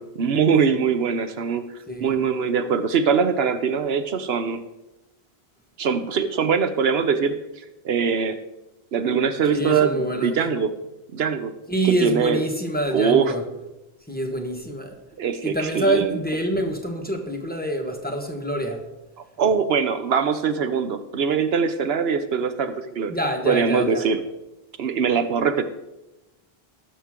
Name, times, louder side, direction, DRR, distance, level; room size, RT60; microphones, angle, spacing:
voice 1, 0.0-1.7 2.0-4.6 5.8-7.4 7.8-8.4 8.9-10.7 11.1-11.5 12.0-12.4 12.9-13.3 15.2-16.1 19.4-23.2 23.5-24.2 24.8-25.6, right 6 dB, 75° right, 10 dB, 1.0 m, -22 dB
voice 2, 1.9-2.2 9.5-10.4 11.7-13.4 14.1-15.0 15.4-18.8 23.1-24.1, right 1 dB, 10° left, 2 dB, 1.3 m, -26 dB
18.5 x 6.6 x 3.7 m, 0.99 s
omnidirectional pair, 1.0 m